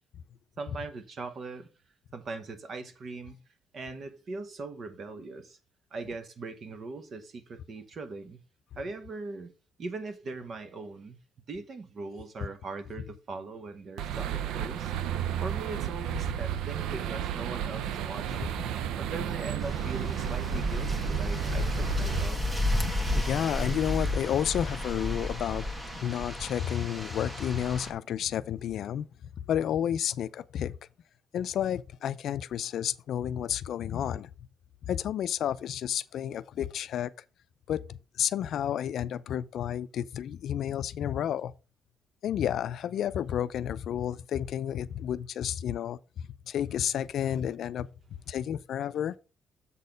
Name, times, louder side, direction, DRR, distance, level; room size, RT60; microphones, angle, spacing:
voice 1, 0.6-1.7 2.1-3.4 3.7-5.6 5.9-8.4 8.8-9.5 9.8-11.2 11.5-14.9 15.4-18.6 19.0-22.4, right 3 dB, 45° right, 1.1 m, -40 dB
sound 1, 14.0-22.3, right 10 dB, 90° right, 0.5 m, -32 dB
sound 2, 19.6-27.9, left 1 dB, 15° right, 1.3 m, -32 dB
voice 2, 22.9-25.7 26.0-29.1 29.5-30.7 31.3-34.3 34.9-37.1 37.7-41.5 42.2-47.9 48.3-49.1, left 10 dB, 65° left, 0.4 m, -31 dB
7.4 x 4.2 x 5.1 m
cardioid pair, 130°, 0 cm